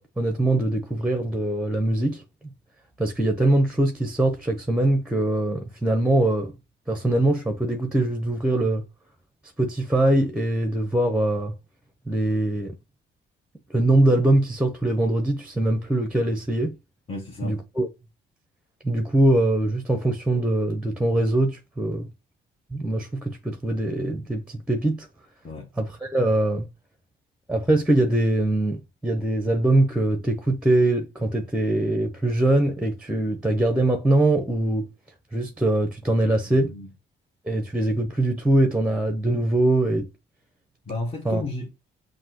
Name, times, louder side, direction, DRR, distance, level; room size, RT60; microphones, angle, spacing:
voice 1, 0.0-2.2 3.0-6.5 6.9-8.8 9.6-11.5 12.1-12.7 13.7-16.8 17.4-17.9 18.8-22.1 22.7-25.1 25.8-26.6 27.5-34.8 35.3-36.7 37.5-40.1 41.2-41.4, right 1 dB, 5° right, 0.8 m, -22 dB
voice 2, 17.1-17.6 25.4-25.7 36.5-36.9 40.9-41.7, left 2 dB, 30° left, 1.3 m, -33 dB
5.8 x 2.6 x 2.9 m
cardioid pair, 90°, 20 cm